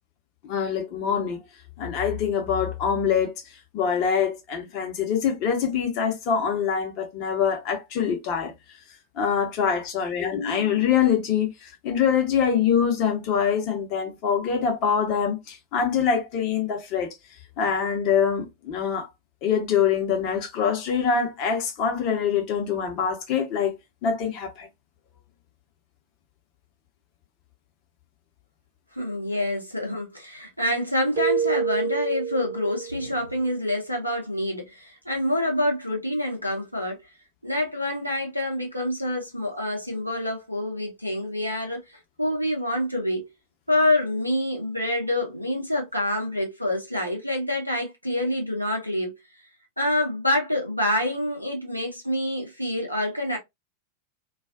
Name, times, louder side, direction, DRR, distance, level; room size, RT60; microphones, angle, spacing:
voice 1, 0.4-1.4 1.8-3.4 3.7-8.5 9.2-17.1 17.6-19.1 19.4-24.7, left 7 dB, 40° left, 0.8 m, -24 dB
voice 2, 28.9-37.0 37.4-41.8 42.2-43.3 43.7-49.2 49.8-53.4, left 1 dB, 90° left, 0.6 m, -27 dB
Keyboard (musical), 31.2-33.2, right 7 dB, 45° right, 0.6 m, -27 dB
2.4 x 2.3 x 2.3 m
figure-of-eight pair, 90°, 0 cm